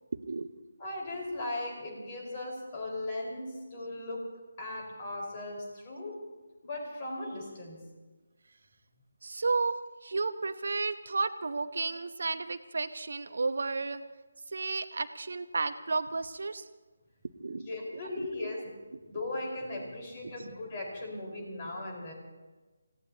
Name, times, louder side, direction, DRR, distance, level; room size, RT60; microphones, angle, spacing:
voice 1, 0.1-0.5 9.2-14.0 14.5-16.6 17.4-17.6 18.2-18.3 20.2-20.3, right 3 dB, 60° right, 11 dB, 0.9 m, -32 dB
voice 2, 0.8-4.2 4.6-6.1 6.6-7.8 17.7-18.7 19.0-22.1, left 2 dB, 30° left, -1 dB, 4.7 m, -38 dB
28.5 x 17.0 x 2.9 m, 1.2 s
figure-of-eight pair, 150°, 0 cm